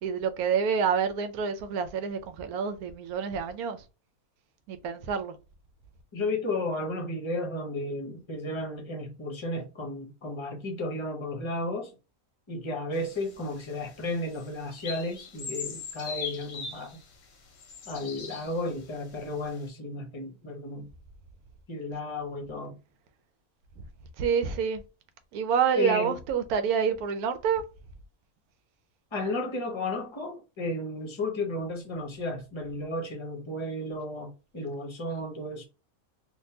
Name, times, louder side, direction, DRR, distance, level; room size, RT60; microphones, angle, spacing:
voice 1, 0.0-3.8 4.7-5.4 24.2-24.8 25.3-27.7, right 7 dB, 85° right, 1.1 m, -27 dB
voice 2, 6.1-11.9 12.5-17.0 17.9-20.9 21.7-22.8 25.8-26.1 29.1-35.7, left 2 dB, 25° left, 0.7 m, -33 dB
sound 1, 12.9-18.9 19.4-19.6, left 5 dB, 55° left, 0.8 m, -41 dB
3.7 x 2.5 x 2.7 m
omnidirectional pair, 1.5 m